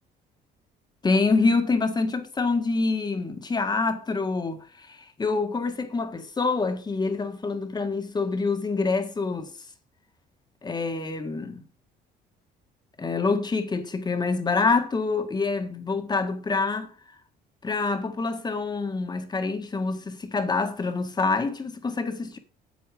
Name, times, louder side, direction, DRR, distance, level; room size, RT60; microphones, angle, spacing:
voice 1, 1.0-9.5 10.6-11.6 13.0-16.9 17.6-22.4, left 4 dB, 25° left, 1.7 m, -26 dB
8.5 x 8.5 x 5.0 m
cardioid pair, 110°, 17 cm